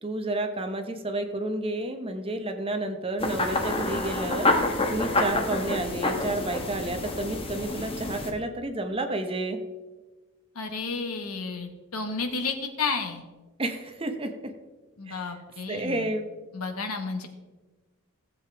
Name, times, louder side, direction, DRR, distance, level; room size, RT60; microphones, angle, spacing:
voice 1, 0.0-4.5 4.9-9.6 13.6-14.3 15.1-15.3 15.7-16.3, right 2 dB, 25° right, 6 dB, 0.8 m, -30 dB
sound 1, 3.2-8.3, left 2 dB, 25° left, 1.1 m, -28 dB
voice 2, 10.5-13.2 15.0-16.1 16.5-17.3, left 4 dB, 85° left, 5 dB, 1.4 m, -32 dB
15.5 x 7.6 x 3.4 m, 1.2 s
head